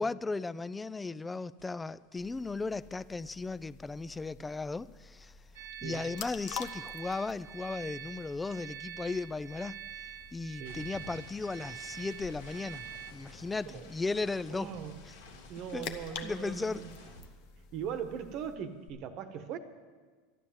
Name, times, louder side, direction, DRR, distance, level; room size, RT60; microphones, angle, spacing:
voice 1, 0.0-5.3 5.8-9.8 10.3-12.9 13.1-14.7 15.7-15.9 16.2-16.9, left 3 dB, 10° left, 0.3 m, -36 dB
sound 1, 1.6-1.8 2.1-6.5 6.7-18.0 18.2-18.9, left 2 dB, 90° left, 2.4 m, -55 dB
sound 2, 2.2-18.6, left 7 dB, 60° left, 1.0 m, -49 dB
sound 3, 5.5-13.1, right 9 dB, 90° right, 0.9 m, -46 dB
voice 2, 14.5-15.0 15.5-16.9 17.7-19.6, right 8 dB, 50° right, 1.1 m, -40 dB
12.0 x 11.5 x 7.5 m
supercardioid pair, 130°, 0 cm